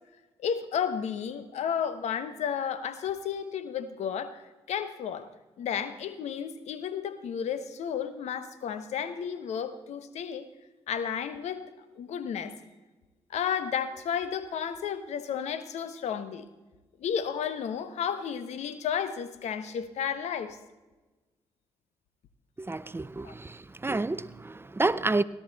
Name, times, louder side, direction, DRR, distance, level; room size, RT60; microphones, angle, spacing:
voice 1, 0.4-5.3 5.6-10.5 10.9-11.6 12.0-12.5 13.3-16.4 17.0-20.6 23.2-23.3, left 8 dB, 75° left, 1.0 m, -32 dB
voice 2, 22.6-25.2, right 2 dB, 20° right, 0.6 m, -29 dB
17.0 x 12.0 x 4.0 m
supercardioid pair, 50°, 12 cm